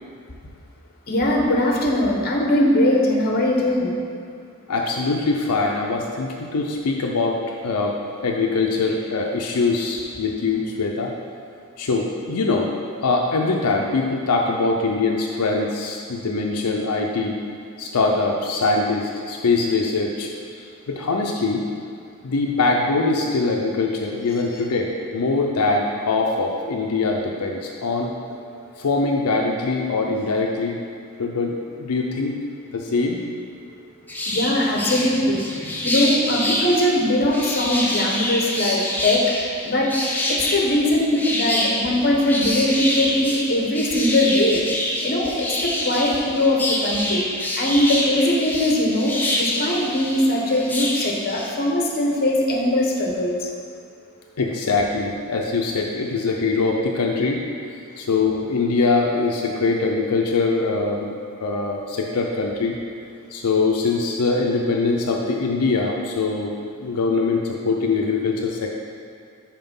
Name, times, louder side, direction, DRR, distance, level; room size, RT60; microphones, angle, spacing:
voice 1, 1.1-3.9 34.3-39.9 40.3-53.5, left 1 dB, 45° left, -1 dB, 0.9 m, -21 dB
voice 2, 4.7-11.1 11.8-12.7 13.0-17.4 17.8-20.3 20.9-21.6 22.2-28.1 28.8-30.8 31.2-32.4 32.7-33.2 54.4-57.4 58.0-61.1 61.4-62.8 63.3-66.5 66.8-68.7, left 3 dB, 85° left, 0 dB, 0.5 m, -22 dB
sound 1, 34.1-51.5, left 1 dB, 10° left, 0.6 m, -26 dB
5.8 x 4.4 x 5.3 m, 2.4 s
head